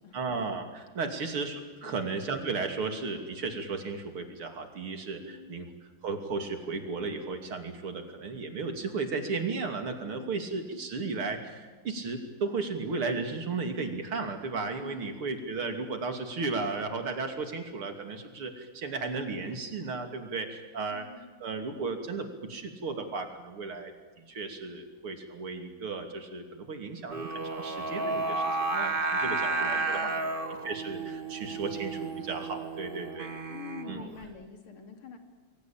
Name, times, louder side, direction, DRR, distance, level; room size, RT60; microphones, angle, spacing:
voice 1, 0.1-5.7 6.0-21.1 21.4-30.1 30.6-33.3 33.9-34.0, right 4 dB, 80° right, 5 dB, 3.6 m, -35 dB
voice 2, 1.8-2.1 5.1-5.7 10.0-10.4 14.8-15.1 20.9-21.3 29.2-30.3 33.5-35.2, left 6 dB, 75° left, 5 dB, 3.7 m, -47 dB
Singing, 27.1-34.2, right 3 dB, 30° right, 1.4 m, -32 dB
29.0 x 22.0 x 8.9 m, 1.3 s
omnidirectional pair, 2.4 m